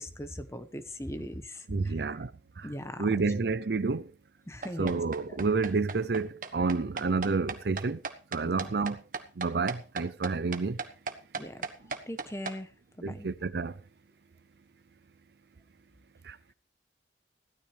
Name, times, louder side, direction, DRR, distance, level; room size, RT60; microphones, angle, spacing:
voice 1, 0.0-2.0 2.6-3.1 4.5-5.0 8.4-8.7 11.4-11.6 12.1-12.7 13.0-13.3, equal, 15° left, 1.1 m, -39 dB
voice 2, 1.7-2.3 2.6-2.7 3.0-4.1 4.8-8.0 8.3-9.0 9.4-10.8 13.0-13.7 16.3-16.4, right 4 dB, 65° right, 0.6 m, -29 dB
sound 1, 4.6-12.6, right 4 dB, 45° right, 1.4 m, -37 dB
17.0 x 13.0 x 3.4 m
head